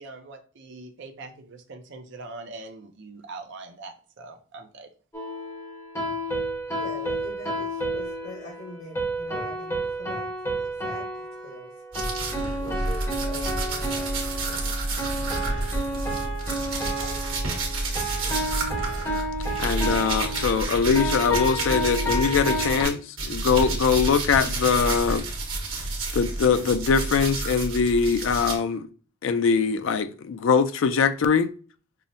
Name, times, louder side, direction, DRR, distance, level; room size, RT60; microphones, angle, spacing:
voice 1, 0.0-4.9, right 3 dB, 55° right, 0.5 m, -42 dB
sound 1, 5.1-22.8, right 1 dB, 15° left, 1.0 m, -31 dB
voice 2, 6.7-10.3 10.8-11.7 12.6-14.7 16.8-17.3 18.2-18.6, left 1 dB, 90° left, 1.2 m, -43 dB
sound 2, 11.9-22.9 23.2-28.6, right 2 dB, 75° right, 1.2 m, -30 dB
voice 3, 19.6-25.3 26.1-28.9 29.2-31.5, left 5 dB, 65° left, 0.4 m, -22 dB
5.5 x 2.0 x 2.6 m
head